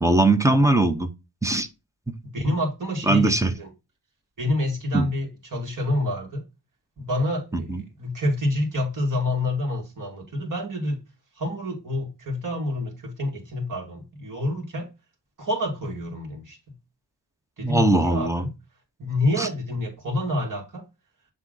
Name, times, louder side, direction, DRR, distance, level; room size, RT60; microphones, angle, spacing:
voice 1, 0.0-1.1 1.4-1.7 3.1-3.5 4.9-5.1 7.5-7.8 17.6-18.4 19.4-19.5, right 2 dB, 5° right, 0.5 m, -20 dB
voice 2, 2.2-3.7 4.4-6.4 7.0-11.0 11.4-14.9 15.4-16.8 17.6-18.5 19.0-20.9, left 1 dB, 45° right, 2.1 m, -28 dB
7.5 x 3.6 x 3.7 m
wide cardioid pair, 160°, 42 cm